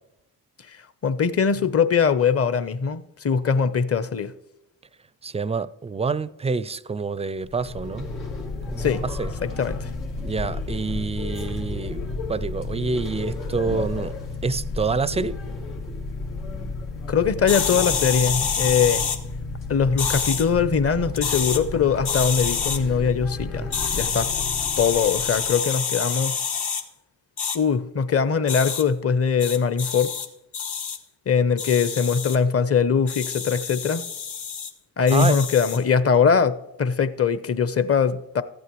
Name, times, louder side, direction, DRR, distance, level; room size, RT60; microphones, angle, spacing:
voice 1, 1.0-4.3 8.8-9.0 9.4-9.9 17.1-19.1 19.7-24.3 24.8-26.4 27.5-30.1 31.3-34.1 35.0-38.4, left 6 dB, 30° left, 0.8 m, -21 dB
voice 2, 5.2-8.1 8.7-9.3 10.2-14.1 14.4-15.4 35.1-35.4, right 4 dB, 15° right, 0.4 m, -27 dB
sound 1, 7.4-25.6, left 3 dB, 85° left, 1.7 m, -32 dB
sound 2, 17.5-19.2 20.0-20.4 21.1-21.6 22.0-22.8 23.7-26.8 27.4-27.6 28.5-28.8 29.4-30.3 30.5-31.0 31.6-32.4 33.1-34.7 35.1-35.8, left 7 dB, 55° left, 1.1 m, -27 dB
14.5 x 8.5 x 3.1 m
hypercardioid pair, 40°, 46 cm